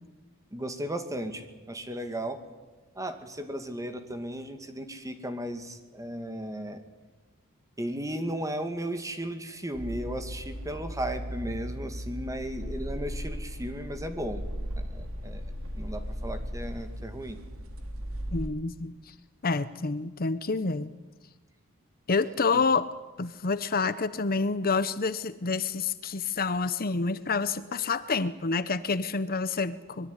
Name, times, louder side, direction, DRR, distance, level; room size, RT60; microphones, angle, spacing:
voice 1, 0.5-2.4 2.9-6.8 7.8-14.4 14.8-15.5 15.7-17.4 22.5-22.6, right 1 dB, 15° right, 8 dB, 2.4 m, -35 dB
sound 1, 9.7-18.5, equal, 65° right, 3.0 m, -37 dB
voice 2, 18.3-19.1 19.4-20.9 22.1-22.9 23.2-30.1, left 4 dB, 40° left, 14 dB, 0.8 m, -28 dB
24.5 x 22.0 x 9.9 m, 1.2 s
head